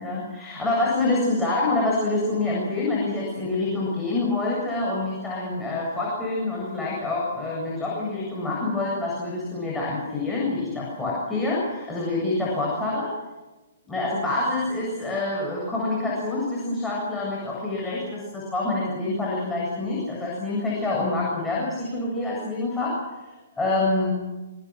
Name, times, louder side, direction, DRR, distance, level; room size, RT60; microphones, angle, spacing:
voice 1, 0.0-13.1 13.8-23.0 23.6-24.1, left 2 dB, 5° left, -5 dB, 7.9 m, -26 dB
25.5 x 25.5 x 6.4 m, 1.2 s
figure-of-eight pair, 120°, 0 cm